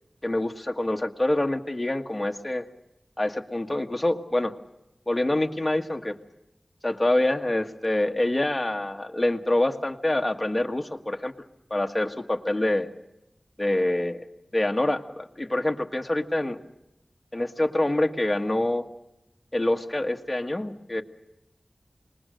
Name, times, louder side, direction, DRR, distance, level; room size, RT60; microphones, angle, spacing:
voice 1, 0.2-2.6 3.2-4.6 5.1-6.2 6.8-11.3 11.7-12.9 13.6-14.2 14.5-16.6 17.3-18.8 19.5-21.0, left 1 dB, 25° left, 4 dB, 1.5 m, -26 dB
26.5 x 20.5 x 6.4 m, 0.91 s
wide cardioid pair, 65°, 0 cm